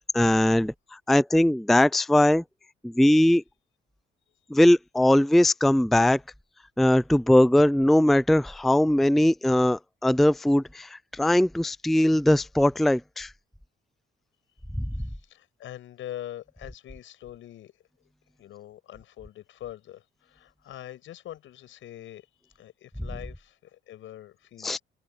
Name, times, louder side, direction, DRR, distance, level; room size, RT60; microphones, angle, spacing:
voice 1, 0.1-0.7 1.1-2.4 2.8-3.4 4.5-6.2 6.8-13.3 14.8-14.9 24.6-24.8, left 1 dB, ahead, 0.4 m, -20 dB
voice 2, 14.9-17.7 18.4-24.8, left 12 dB, 80° left, 7.0 m, -43 dB
open air
cardioid pair, 90°, 20 cm